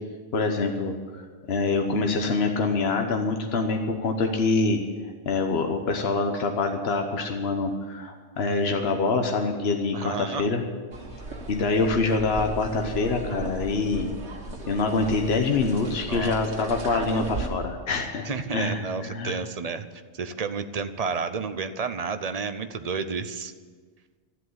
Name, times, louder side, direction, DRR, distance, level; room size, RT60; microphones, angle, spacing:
voice 1, 0.3-1.2 1.5-10.6 11.5-14.1 14.7-19.4, left 3 dB, 65° left, 4 dB, 1.3 m, -25 dB
voice 2, 9.9-10.5 16.1-16.4 18.3-19.8 20.1-23.5, right 5 dB, 40° right, 10 dB, 0.7 m, -31 dB
sound 1, 10.9-17.5, right 2 dB, 80° right, 2.0 m, -36 dB
13.5 x 8.0 x 9.7 m, 1.5 s
omnidirectional pair, 1.1 m